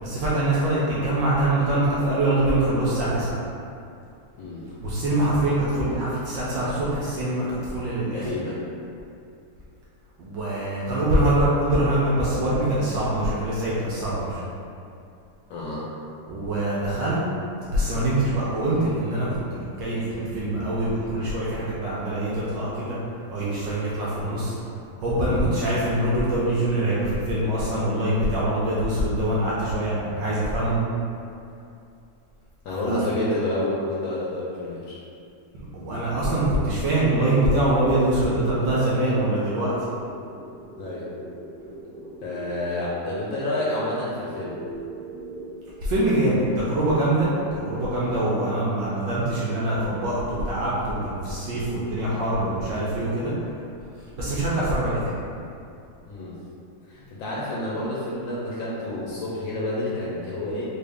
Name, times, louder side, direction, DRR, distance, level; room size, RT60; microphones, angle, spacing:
voice 1, 0.0-3.4 4.8-8.3 10.2-14.4 16.3-17.2 17.7-23.0 23.3-24.6 25.0-30.8 32.9-33.0 35.7-39.7 45.8-53.3 54.2-55.1, right 1 dB, 70° right, -8 dB, 1.2 m, -24 dB
voice 2, 8.1-8.6 15.5-15.9 25.3-25.6 32.6-35.0 40.8-41.1 42.2-44.6 56.1-56.4 56.9-60.6, left 1 dB, 70° left, -6 dB, 1.2 m, -29 dB
sound 1, 37.2-45.5, right 1 dB, 50° right, 1.0 m, -42 dB
3.6 x 2.4 x 3.4 m, 2.6 s
omnidirectional pair, 2.4 m